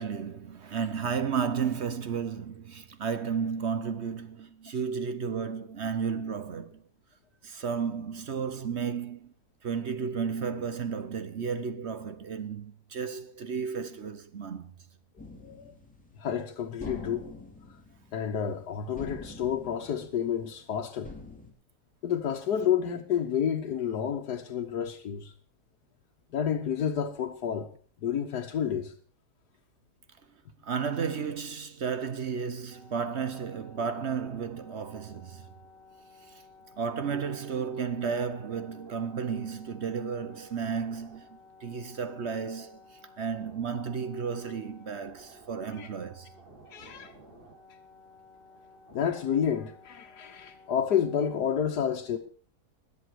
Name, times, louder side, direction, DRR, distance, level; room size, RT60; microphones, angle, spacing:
voice 1, 0.0-6.8 7.4-9.3 9.6-14.7 30.6-35.5 36.8-42.8 43.2-46.3, right 6 dB, 50° right, 1.0 m, -33 dB
sound 1, 15.2-16.4 16.8-18.7 18.9-20.6 21.0-21.5, left 2 dB, 5° left, 2.8 m, -45 dB
voice 2, 15.4-15.8 16.2-17.3 18.1-21.1 22.0-25.3 26.3-27.7 28.0-28.9 45.7-45.9 46.7-47.1 48.9-52.2, left 8 dB, 90° left, 1.6 m, -30 dB
sound 2, 32.7-51.4, left 1 dB, 35° right, 3.1 m, -54 dB
21.0 x 8.2 x 4.6 m
omnidirectional pair, 1.7 m